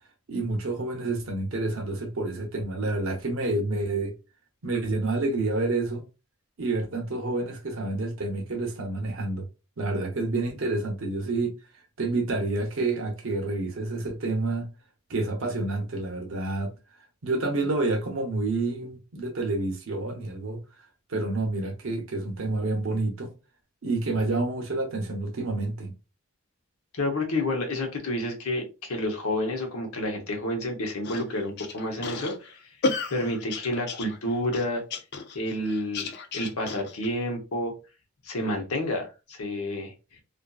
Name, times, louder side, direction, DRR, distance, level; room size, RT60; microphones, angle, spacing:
voice 1, 0.3-4.1 4.6-6.0 6.6-9.5 9.8-11.5 12.0-14.7 15.1-16.7 17.2-20.6 21.1-23.3 23.8-25.9, right 2 dB, 60° right, 0.7 m, -28 dB
voice 2, 26.9-32.6 33.1-34.8 35.3-36.1 36.3-37.7 38.2-39.9, left 1 dB, 75° left, 0.8 m, -29 dB
sound 1, 31.0-37.1, left 3 dB, 45° left, 0.4 m, -33 dB
2.6 x 2.5 x 2.3 m
head